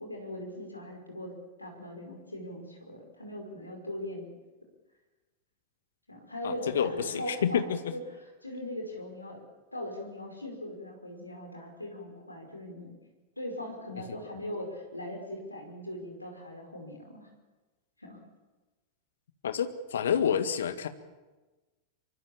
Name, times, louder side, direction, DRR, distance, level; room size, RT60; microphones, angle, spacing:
voice 1, 0.0-4.3 6.1-9.4 9.7-12.9 13.4-17.3 18.0-18.2, left 1 dB, 85° left, 2 dB, 5.3 m, -40 dB
voice 2, 6.4-7.9 19.4-20.9, left 8 dB, 65° left, 10 dB, 1.7 m, -28 dB
24.5 x 24.0 x 7.1 m, 1.2 s
figure-of-eight pair, 90°, 0 cm